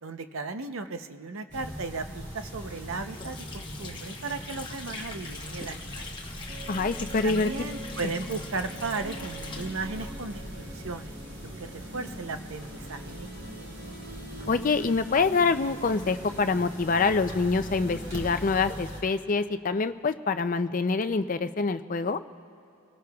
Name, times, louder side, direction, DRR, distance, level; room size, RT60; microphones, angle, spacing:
voice 1, 0.0-6.1 7.2-11.1 11.4-13.3, right 3 dB, 65° right, 8 dB, 0.7 m, -36 dB
sound 1, 1.5-19.0, equal, 30° right, 2.5 m, -41 dB
Water / Sink (filling or washing), 2.3-10.9, left 4 dB, 20° left, 1.0 m, -43 dB
sound 2, 6.5-18.4, right 1 dB, 50° right, 1.3 m, -44 dB
voice 2, 6.7-7.5 14.5-22.2, left 4 dB, 35° left, 10 dB, 0.4 m, -26 dB
29.0 x 18.5 x 2.3 m, 2.8 s
head